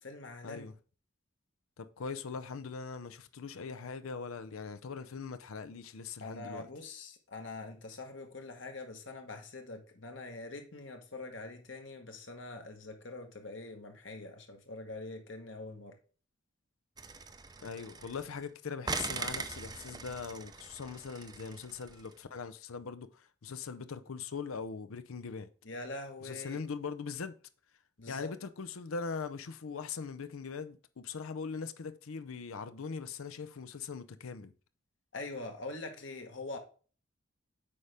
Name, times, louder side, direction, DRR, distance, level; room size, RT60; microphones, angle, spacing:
voice 1, 0.0-0.7 6.2-16.0 25.6-26.7 28.0-28.3 35.1-36.6, left 2 dB, 60° left, 1.3 m, -44 dB
voice 2, 1.8-6.7 17.6-25.5 26.2-27.4 28.1-34.5, left 5 dB, 90° left, 0.6 m, -41 dB
sound 1, 17.0-18.4 18.8-22.1, right 4 dB, 20° right, 0.5 m, -41 dB
8.6 x 5.1 x 3.4 m
head